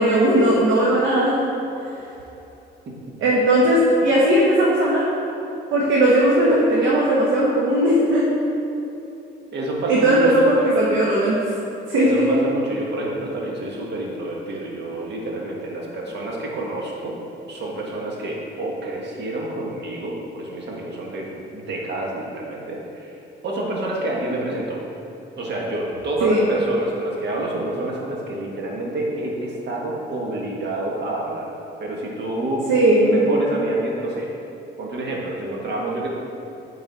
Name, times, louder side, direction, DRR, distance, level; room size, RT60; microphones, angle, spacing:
voice 1, 0.0-1.4 3.2-5.0 5.7-8.2 9.9-11.4 11.9-12.3 26.2-26.5 32.7-33.3, right 1 dB, 90° right, -5 dB, 1.1 m, -17 dB
voice 2, 9.5-10.5 12.0-17.2 17.5-23.1 23.4-24.8 25.4-31.5 31.8-32.7 33.0-34.3 34.8-36.1, right 1 dB, 60° right, -2 dB, 1.4 m, -28 dB
9.3 x 4.0 x 4.0 m, 2.9 s
cardioid pair, 90°, 20 cm